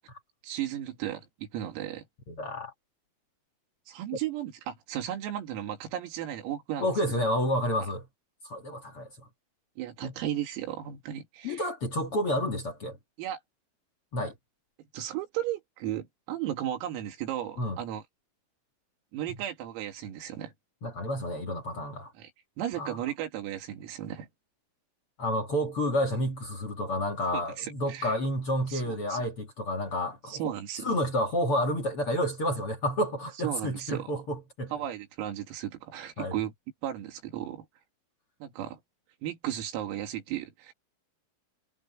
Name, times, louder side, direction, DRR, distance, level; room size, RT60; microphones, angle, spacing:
voice 1, 0.4-2.1 3.9-6.9 9.8-11.7 13.2-13.4 14.9-18.0 19.1-20.5 22.2-22.3 22.6-24.3 27.3-28.2 28.7-29.2 30.3-31.0 33.4-34.1 34.7-36.5 36.8-37.7 38.4-38.8 39.2-40.7, right 11 dB, 85° right, 5.2 m, -35 dB
voice 2, 2.3-2.7 6.8-8.0 8.4-9.1 10.0-10.1 11.4-13.0 14.1-14.3 17.6-17.8 20.8-22.1 22.8-23.0 25.2-30.4 30.8-34.7 36.2-36.3, equal, 50° left, 1.8 m, -30 dB
omnidirectional pair, 5.9 m